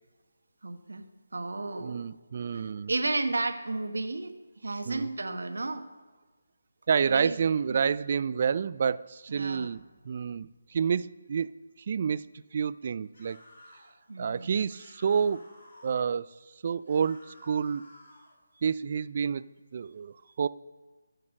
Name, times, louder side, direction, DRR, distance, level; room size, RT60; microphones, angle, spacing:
voice 1, 0.6-1.1 1.3-2.1 2.5-4.3 4.6-5.9 7.1-7.4 7.7-7.8 9.3-9.7 14.1-14.5, right 2 dB, 80° right, 8 dB, 1.2 m, -33 dB
voice 2, 1.8-2.9 4.9-5.1 6.9-11.5 11.9-13.4 14.2-15.5 15.8-16.3 16.6-17.8 18.6-19.4 19.7-20.5, right 6 dB, 45° right, 18 dB, 0.4 m, -29 dB
sound 1, 13.1-13.9 14.7-16.0 16.8-18.4, left 1 dB, 65° left, 4.1 m, -54 dB
15.5 x 6.6 x 6.4 m, 1.3 s
figure-of-eight pair, 160°, 0 cm